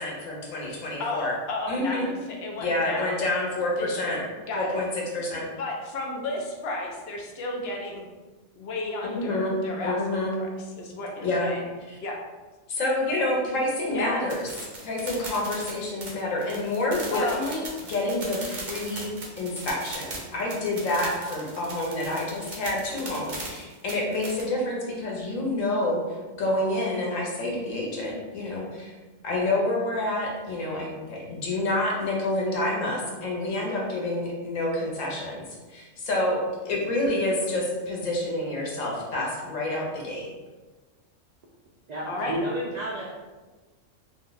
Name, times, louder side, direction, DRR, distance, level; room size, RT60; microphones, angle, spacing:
voice 1, 0.0-1.3 1.7-2.1 2.6-4.2 4.6-4.9 5.1-5.5 9.1-9.5 9.8-10.4 11.2-11.5 11.9-12.0 12.7-14.5 14.8-26.0 26.3-28.9 29.2-35.4 35.7-40.3, left 1 dB, 90° left, -2 dB, 1.2 m, -28 dB
voice 2, 1.0-3.2 3.8-4.8 5.6-8.0 8.6-10.0 10.4-10.5 10.7-11.6 12.0-12.2 13.9-14.1 17.1-17.4 42.0-42.4, left 2 dB, 65° left, 0 dB, 0.8 m, -33 dB
sound 1, 14.3-24.4, right 2 dB, 45° right, 0.7 m, -38 dB
voice 3, 41.9-43.2, right 1 dB, 75° right, -4 dB, 0.4 m, -31 dB
2.6 x 2.2 x 3.8 m, 1.3 s
omnidirectional pair, 1.3 m